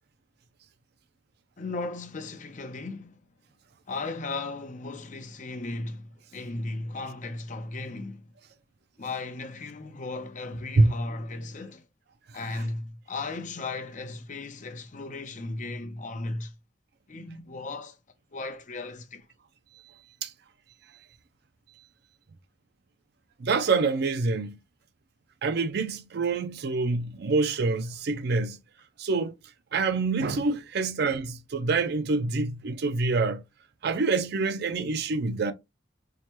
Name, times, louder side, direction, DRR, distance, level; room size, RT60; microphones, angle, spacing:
voice 1, 1.6-3.2 3.9-8.2 9.0-11.8 12.3-16.5 17.1-18.0 18.3-19.3, left 3 dB, 40° left, 0.6 m, -36 dB
voice 2, 23.4-24.6 25.4-28.6 29.0-29.3 29.7-33.4 33.8-35.5, right 3 dB, 55° right, 0.4 m, -26 dB
4.6 x 2.2 x 2.9 m
head